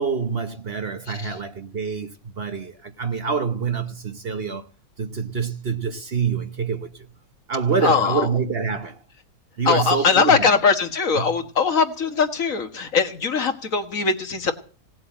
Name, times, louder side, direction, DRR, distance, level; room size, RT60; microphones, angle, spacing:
voice 1, 0.0-4.7 5.0-7.1 7.5-9.0 9.6-10.5 11.1-11.4, right 5 dB, 45° right, 1.1 m, -26 dB
voice 2, 7.8-8.3 9.7-14.5, left 5 dB, 65° left, 1.9 m, -21 dB
18.0 x 7.8 x 8.7 m
omnidirectional pair, 1.6 m